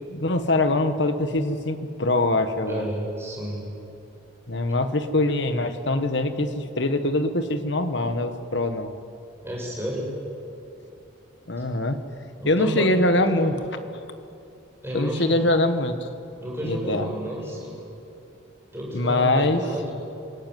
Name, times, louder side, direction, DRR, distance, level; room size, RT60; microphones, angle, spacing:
voice 1, 0.1-2.9 4.5-8.9 11.5-12.0 12.4-13.5 14.9-16.1 16.6-17.1 18.9-19.6, left 2 dB, 65° left, 9 dB, 1.6 m, -23 dB
voice 2, 2.7-3.6 9.4-10.1 11.6-11.7 12.4-13.6 14.8-15.5 16.4-17.8 18.7-19.9, equal, 10° right, -3 dB, 6.4 m, -31 dB
26.5 x 18.0 x 9.5 m, 2.7 s
head